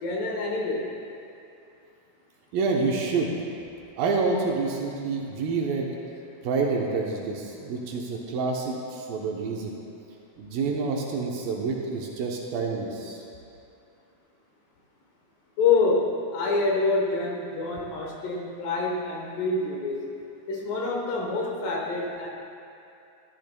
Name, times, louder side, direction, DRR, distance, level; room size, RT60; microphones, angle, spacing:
voice 1, 0.0-0.9 15.6-20.1 20.5-22.3, left 3 dB, 70° left, -2 dB, 2.5 m, -26 dB
voice 2, 2.5-3.3 4.0-5.9 6.4-9.7 10.4-13.2, right 4 dB, 75° right, -1 dB, 2.4 m, -28 dB
14.5 x 12.0 x 2.2 m, 2.6 s
omnidirectional pair, 4.5 m